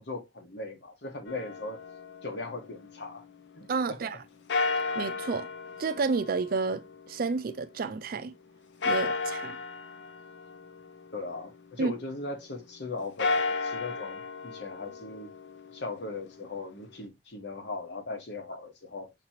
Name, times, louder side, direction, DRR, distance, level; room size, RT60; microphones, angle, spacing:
voice 1, 0.0-1.8 2.2-3.2 3.5-4.0 11.1-15.3 15.7-19.1, left 3 dB, 70° left, 1.3 m, -39 dB
sound 1, 1.3-3.4 4.5-7.9 8.8-11.8 13.0-17.0, left 3 dB, 85° left, 0.6 m, -34 dB
voice 2, 3.7-4.2 4.9-5.5 5.8-8.3 8.8-9.6 11.8-11.9, right 4 dB, 55° right, 0.4 m, -30 dB
5.9 x 3.0 x 2.8 m
head